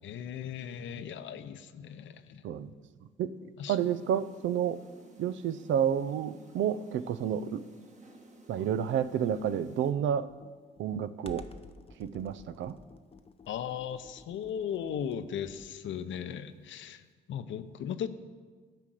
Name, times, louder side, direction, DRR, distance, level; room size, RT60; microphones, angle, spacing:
voice 1, 0.0-2.4 3.6-3.8 13.5-17.0 17.3-18.1, left 8 dB, 70° left, 11 dB, 0.7 m, -37 dB
voice 2, 3.2-4.8 5.2-7.6 8.5-10.3 10.8-11.5 12.0-12.8, right 9 dB, 70° right, 15 dB, 0.5 m, -30 dB
sound 1, 3.7-9.9, right 2 dB, 35° right, 1.6 m, -55 dB
Computer keyboard, 9.0-15.9, left 3 dB, 30° left, 0.8 m, -53 dB
12.0 x 5.1 x 7.6 m, 1.5 s
cardioid pair, 90°, 20 cm